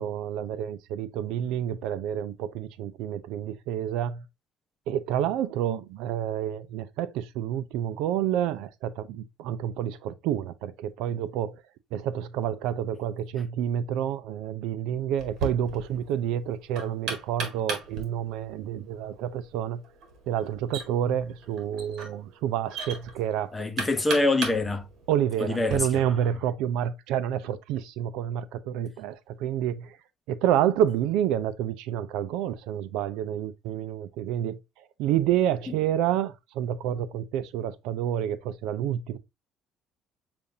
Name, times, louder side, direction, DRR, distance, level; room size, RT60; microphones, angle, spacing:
voice 1, 0.0-4.2 4.9-11.6 11.9-19.8 20.3-23.5 25.1-30.0 30.3-39.2, right 10 dB, 85° right, 0.4 m, -29 dB
Knock, 15.2-25.8, right 4 dB, 65° right, 1.5 m, -38 dB
voice 2, 23.5-24.9 25.4-26.2, left 2 dB, 15° left, 0.7 m, -25 dB
6.8 x 2.5 x 2.7 m
cardioid pair, 125°, 0 cm